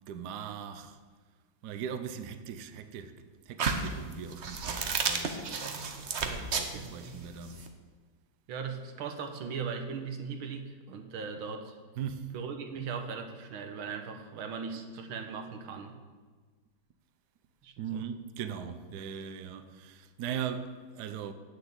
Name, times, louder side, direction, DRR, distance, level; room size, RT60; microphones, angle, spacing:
voice 1, 0.1-1.0 1.6-3.2 3.5-5.4 6.2-7.6 12.0-12.3 17.8-21.3, right 7 dB, 65° right, 1.2 m, -39 dB
sound 1, 3.6-7.7, right 5 dB, 50° right, 0.9 m, -32 dB
voice 2, 5.9-7.2 8.5-11.8 12.3-16.0 17.6-18.1, right 5 dB, 90° right, 1.9 m, -39 dB
9.5 x 7.0 x 8.0 m
omnidirectional pair, 2.2 m